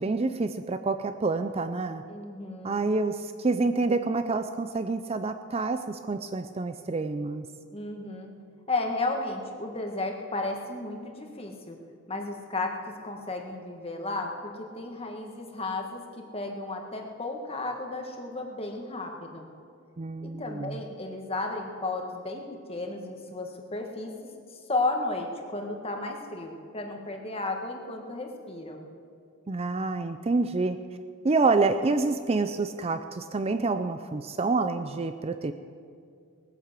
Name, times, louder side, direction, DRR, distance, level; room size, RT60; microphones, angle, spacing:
voice 1, 0.0-2.0 2.6-7.5 20.0-20.8 29.5-30.8 31.2-35.5, right 3 dB, 30° right, 9 dB, 0.4 m, -27 dB
voice 2, 2.1-2.8 7.7-8.3 8.7-11.8 12.1-19.5 20.2-28.9, left 2 dB, 25° left, 3 dB, 1.6 m, -34 dB
19.5 x 9.8 x 7.5 m, 2.3 s
head